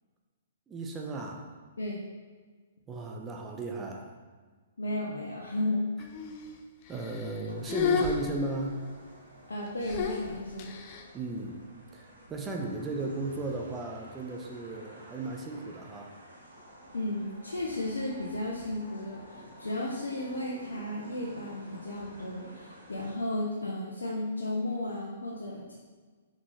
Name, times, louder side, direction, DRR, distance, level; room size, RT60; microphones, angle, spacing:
voice 1, 0.7-1.5 2.9-4.1 6.9-8.8 11.1-11.6 11.9-16.1, right 2 dB, 15° right, 1 dB, 0.9 m, -35 dB
voice 2, 4.8-5.9 9.5-10.7 16.9-25.8, left 1 dB, 80° left, -4 dB, 1.1 m, -34 dB
sound 1, 6.0-6.6 6.9-7.4 7.7-8.9 9.8-11.0, left 6 dB, 40° left, 0.8 m, -32 dB
sound 2, 7.5-23.1, equal, 85° right, 2.1 m, -52 dB
7.0 x 5.3 x 4.2 m, 1.5 s
figure-of-eight pair, 125°, 0 cm